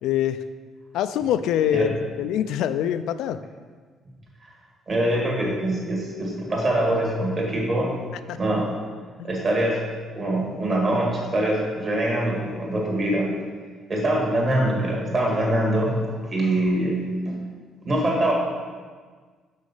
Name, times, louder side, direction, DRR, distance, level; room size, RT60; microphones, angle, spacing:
voice 1, 0.0-0.4 0.9-3.4 9.2-9.3, left 10 dB, 75° left, 11 dB, 0.3 m, -24 dB
voice 2, 4.9-8.0 8.4-8.7 9.2-9.9 10.1-13.3 13.9-17.4 17.8-18.3, right 1 dB, 30° right, -2 dB, 1.9 m, -24 dB
6.4 x 6.2 x 5.6 m, 1.5 s
cardioid pair, 165°, 0 cm